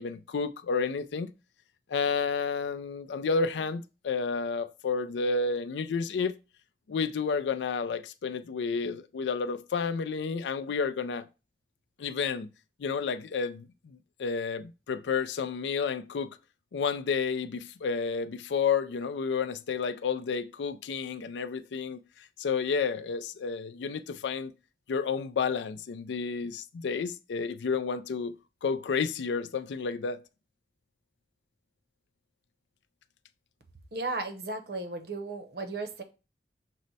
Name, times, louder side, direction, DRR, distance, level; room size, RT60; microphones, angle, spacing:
voice 1, 0.0-1.3 1.9-6.4 6.9-11.3 12.0-12.5 12.8-16.4 16.7-24.5 24.9-28.4 28.6-30.2, left 5 dB, 90° left, 0.4 m, -31 dB
voice 2, 33.9-36.0, right 3 dB, 60° right, 0.7 m, -35 dB
6.2 x 2.1 x 4.0 m
head